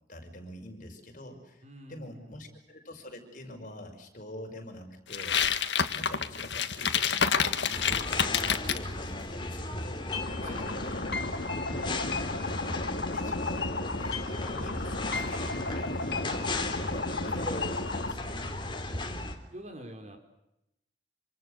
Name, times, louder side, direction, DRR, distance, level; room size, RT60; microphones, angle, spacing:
voice 1, 0.1-1.6 1.9-5.4 5.9-11.2 11.7-12.0 12.4-13.8 14.0-17.8 18.1-18.5, left 1 dB, 50° left, 4 dB, 5.8 m, -45 dB
voice 2, 1.6-2.6 10.4-10.7 17.1-17.4 19.0-20.2, right 1 dB, 40° right, 5 dB, 4.6 m, -47 dB
sound 1, 5.1-8.8, left 7 dB, 85° left, 1.7 m, -28 dB
sound 2, 7.7-19.3, left 2 dB, 25° left, 3.4 m, -36 dB
sound 3, 10.1-18.1, left 3 dB, 65° left, 2.3 m, -34 dB
27.5 x 26.5 x 6.6 m, 0.86 s
head